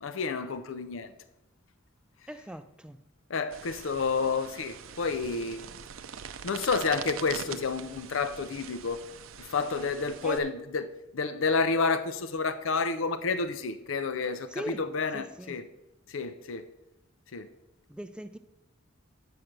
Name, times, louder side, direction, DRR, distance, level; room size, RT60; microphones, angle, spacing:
voice 1, 0.0-1.1 3.3-5.6 6.4-9.0 9.4-10.9 11.1-15.6 16.1-16.7 17.3-17.5, left 4 dB, 75° left, 0.5 m, -30 dB
voice 2, 2.3-3.0 10.2-10.5 14.5-15.6 17.9-18.4, right 1 dB, 5° right, 0.3 m, -40 dB
sound 1, 3.5-10.4, right 8 dB, 85° right, 0.5 m, -43 dB
7.9 x 6.4 x 6.0 m
head